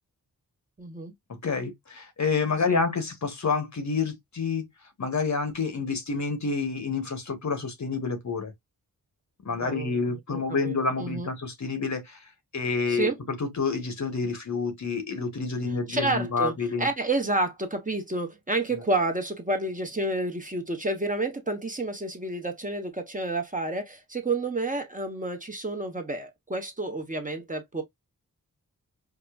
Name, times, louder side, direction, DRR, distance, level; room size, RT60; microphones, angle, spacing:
voice 1, 0.8-1.1 2.7-2.8 9.5-11.3 12.9-13.2 15.9-27.8, right 2 dB, 25° right, 0.9 m, -30 dB
voice 2, 1.3-4.6 5.0-8.5 9.4-12.2 12.5-16.9, left 4 dB, 50° left, 1.1 m, -28 dB
4.8 x 2.2 x 2.3 m
wide cardioid pair, 70°, 35 cm